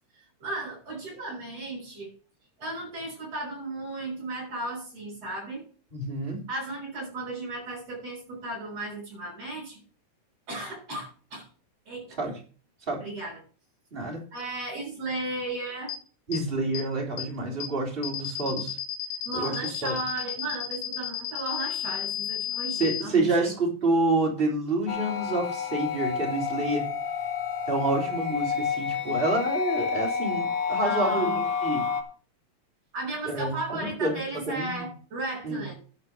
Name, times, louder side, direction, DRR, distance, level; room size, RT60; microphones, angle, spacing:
voice 1, 0.4-2.1 2.6-5.6 6.5-9.8 10.5-11.5 11.9-12.2 13.0-13.4 14.1-15.9 19.3-23.5 30.8-31.4 32.9-35.7, right 2 dB, 60° right, -7 dB, 7.7 m, -35 dB
voice 2, 5.9-6.4 12.2-12.3 12.9-13.0 13.9-14.2 16.3-18.8 19.3-19.6 19.8-20.0 22.7-26.9 27.7-31.9 33.2-34.2 34.5-34.8 35.4-35.6, right 2 dB, 20° right, -1 dB, 3.7 m, -28 dB
sound 1, 15.9-16.0 16.3-16.4 16.7-16.8 17.2-17.3 17.6-17.7 18.0-23.0, left 12 dB, 65° left, 2.4 m, -32 dB
sound 2, 24.9-32.0, left 6 dB, 85° left, 3.5 m, -29 dB
12.0 x 5.8 x 7.3 m, 0.38 s
omnidirectional pair, 3.3 m